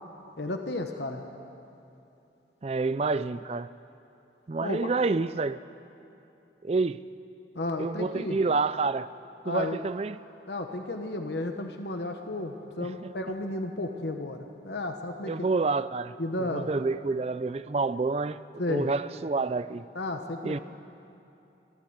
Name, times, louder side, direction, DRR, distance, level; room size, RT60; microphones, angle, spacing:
voice 1, 0.4-1.2 4.6-4.9 7.5-8.4 9.4-9.8 10.5-15.3 16.2-16.7 18.6-18.9 19.9-20.6, left 2 dB, 70° left, 5 dB, 1.2 m, -33 dB
voice 2, 2.6-3.7 4.5-5.6 6.6-7.0 7.8-9.1 9.5-10.2 12.8-13.1 15.3-18.4 18.7-19.9 20.4-20.6, right 3 dB, 35° right, 14 dB, 0.4 m, -28 dB
24.5 x 15.0 x 8.0 m, 2.8 s
head